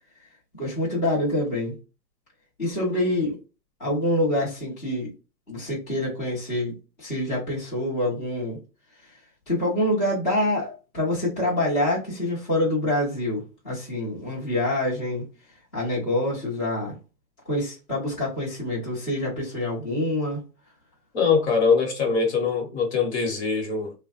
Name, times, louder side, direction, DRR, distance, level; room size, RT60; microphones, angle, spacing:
voice 1, 0.6-1.7 2.6-3.4 3.8-5.1 5.5-8.6 9.0-9.2 9.5-15.3 15.7-17.0 17.4-20.4, left 1 dB, 10° left, 0.7 m, -26 dB
voice 2, 21.1-23.9, left 5 dB, 40° left, 1.0 m, -22 dB
3.2 x 2.1 x 2.8 m
hypercardioid pair, 155°, 49 cm